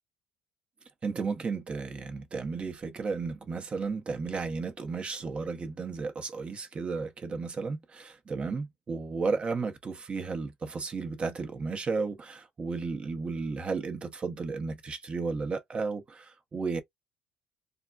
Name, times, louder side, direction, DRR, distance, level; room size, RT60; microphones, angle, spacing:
voice 1, 1.0-16.8, right 4 dB, 35° right, 0.9 m, -33 dB
3.6 x 2.2 x 2.3 m
hypercardioid pair, 65°, 3 cm